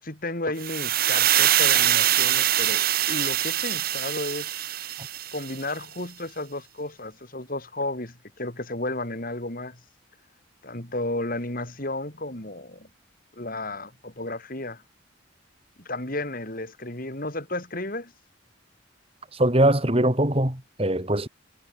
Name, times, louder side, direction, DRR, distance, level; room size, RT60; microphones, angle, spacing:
voice 1, 0.0-4.5 5.3-9.8 10.6-12.9 13.3-14.8 15.8-18.1, left 2 dB, 45° left, 3.9 m, -33 dB
sound 1, 0.6-5.6, right 12 dB, 50° right, 1.4 m, -23 dB
voice 2, 19.4-21.3, right 1 dB, 30° right, 3.1 m, -21 dB
head